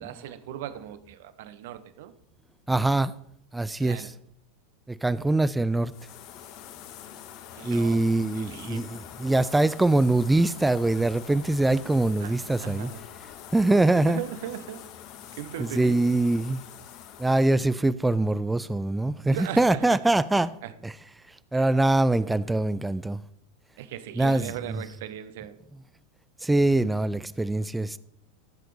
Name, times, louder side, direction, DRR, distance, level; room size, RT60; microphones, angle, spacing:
voice 1, 0.0-2.1 3.8-4.1 7.6-9.0 12.2-13.0 14.1-14.8 15.3-16.2 19.3-20.0 20.3-20.7 21.5-21.7 23.8-25.6, right 11 dB, 60° right, 0.8 m, -38 dB
voice 2, 2.7-3.1 3.5-4.1 4.9-5.9 7.6-12.9 13.5-14.2 15.6-16.6 17.2-20.5 20.8-20.9 21.5-23.2 24.2-24.5 26.4-28.0, right 2 dB, 10° right, 0.4 m, -23 dB
sound 1, 5.9-17.6, left 10 dB, 50° left, 0.9 m, -45 dB
14.5 x 7.7 x 3.3 m
figure-of-eight pair, 85°, 0 cm